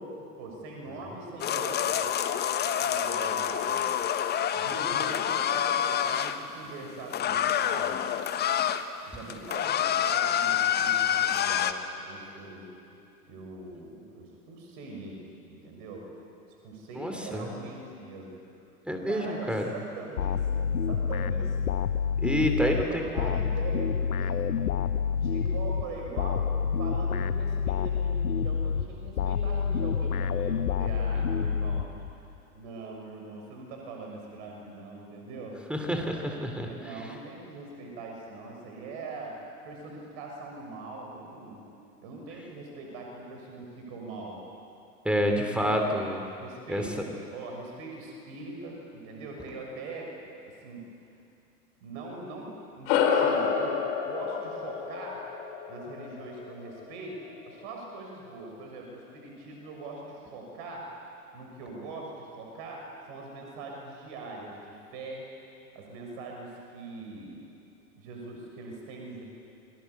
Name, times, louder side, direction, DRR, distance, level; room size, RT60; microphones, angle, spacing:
voice 1, 0.0-2.0 2.8-4.0 4.5-7.9 9.1-12.7 13.3-16.1 16.6-18.4 18.9-21.8 22.3-24.6 25.1-35.6 36.6-41.7 42.0-44.4 45.5-45.9 46.4-50.2 50.4-50.9 51.8-55.2 55.7-60.9 61.3-65.3 65.7-67.4 67.9-69.2, right 2 dB, 45° right, 0 dB, 6.7 m, -42 dB
sound 1, 1.4-6.4 7.1-8.9 9.2-11.7, left 9 dB, 20° left, 1.2 m, -27 dB
voice 2, 17.0-17.4 18.9-19.7 22.2-23.3 35.7-36.7 45.0-46.2 46.7-46.8, equal, ahead, 3 dB, 2.8 m, -28 dB
sound 2, 20.2-32.4, left 6 dB, 65° left, 1.1 m, -28 dB
sound 3, 52.9-57.6, left 6 dB, 45° left, 3.6 m, -29 dB
28.5 x 24.0 x 8.4 m, 2.6 s
figure-of-eight pair, 100°, 47 cm